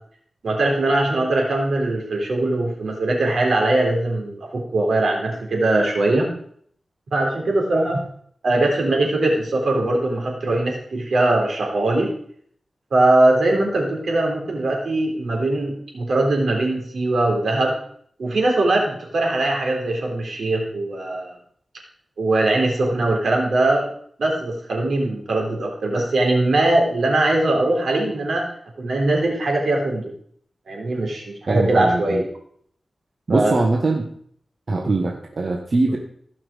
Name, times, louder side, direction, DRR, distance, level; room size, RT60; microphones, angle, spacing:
voice 1, 0.4-6.3 7.1-8.0 8.4-12.1 12.9-17.8 18.2-21.4 22.2-23.9 24.2-28.4 28.8-30.1 30.7-32.3 33.3-33.5, right 2 dB, 80° right, 0 dB, 3.5 m, -21 dB
voice 2, 31.5-32.2 33.3-34.1 34.7-36.0, right 2 dB, 50° right, 2 dB, 1.3 m, -22 dB
16.0 x 6.0 x 5.0 m, 0.62 s
wide cardioid pair, 85°, 0 cm